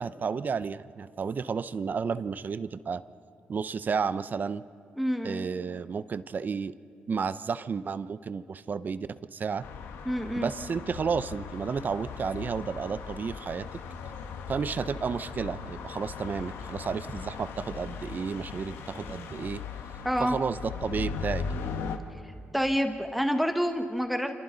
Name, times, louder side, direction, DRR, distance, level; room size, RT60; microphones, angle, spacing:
voice 1, 0.0-3.0 3.5-4.6 5.2-6.7 7.1-9.6 10.4-13.8 14.5-19.6 20.2-21.6, right 5 dB, 50° right, 14 dB, 0.6 m, -32 dB
voice 2, 5.0-5.5 10.0-10.5 20.0-20.4 22.5-24.3, equal, ahead, 5 dB, 1.4 m, -28 dB
sound 1, 9.6-22.0, left 5 dB, 85° left, 1.4 m, -38 dB
26.5 x 25.5 x 4.0 m, 2.5 s
cardioid pair, 65°, 4 cm